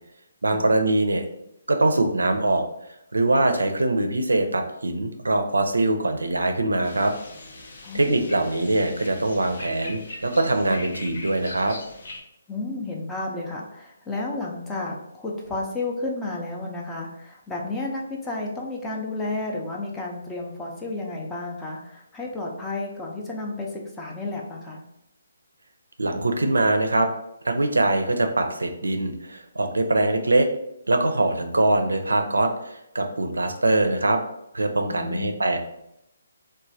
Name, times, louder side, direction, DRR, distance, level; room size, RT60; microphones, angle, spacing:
voice 1, 0.4-1.2 1.7-2.6 3.1-7.1 7.9-11.7 26.0-27.1 27.4-30.5 30.9-34.2 34.5-35.6, right 2 dB, 80° right, 5 dB, 0.4 m, -22 dB
sound 1, 6.8-12.2, left 2 dB, 55° left, 0.6 m, -41 dB
voice 2, 7.8-8.3 12.5-24.8 34.8-35.4, left 2 dB, 10° left, -2 dB, 0.5 m, -32 dB
3.1 x 2.2 x 2.6 m, 0.81 s
figure-of-eight pair, 140°, 0 cm